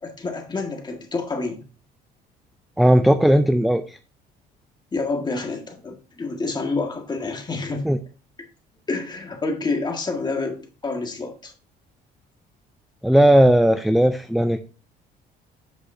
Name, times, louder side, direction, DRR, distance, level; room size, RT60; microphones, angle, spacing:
voice 1, 0.0-1.6 4.9-7.8 8.9-11.5, left 3 dB, 25° left, 1.7 m, -28 dB
voice 2, 2.8-4.0 7.8-8.0 13.0-14.6, equal, ahead, 0.4 m, -16 dB
8.1 x 6.2 x 2.7 m
cardioid pair, 110°, 17 cm